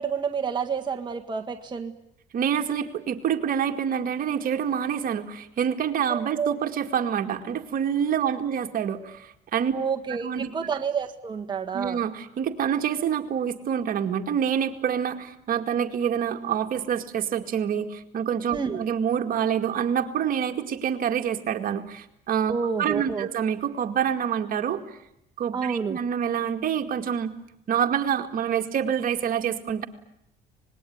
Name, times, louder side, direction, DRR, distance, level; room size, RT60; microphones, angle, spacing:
voice 1, 0.0-1.9 6.1-6.5 9.7-12.0 18.5-18.8 22.5-23.3 25.5-26.0, right 6 dB, 25° right, 4 dB, 1.7 m, -29 dB
voice 2, 2.3-9.7 10.2-10.5 11.7-22.5 22.8-24.8 25.4-27.3 27.7-29.9, right 8 dB, 55° right, 6 dB, 2.2 m, -27 dB
26.0 x 20.5 x 9.6 m, 0.81 s
cardioid pair, 110°, 17 cm